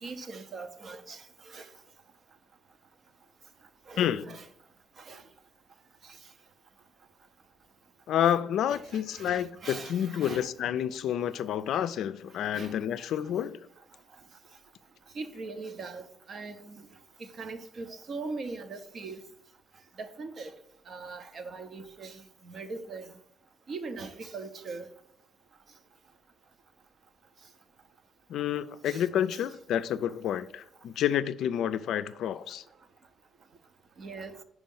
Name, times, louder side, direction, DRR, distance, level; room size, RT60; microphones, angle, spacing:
voice 1, 0.0-1.7 3.9-4.5 5.0-5.2 6.0-6.2 8.7-10.5 12.5-12.8 13.2-13.3 15.1-16.9 17.2-19.2 20.0-20.5 20.9-23.1 23.7-24.9 28.9-29.0 34.0-34.4, right 3 dB, 50° right, 0.7 m, -41 dB
voice 2, 8.1-13.6 28.3-32.6, left 10 dB, 75° left, 0.3 m, -29 dB
5.2 x 4.8 x 5.4 m
cardioid pair, 90°, 0 cm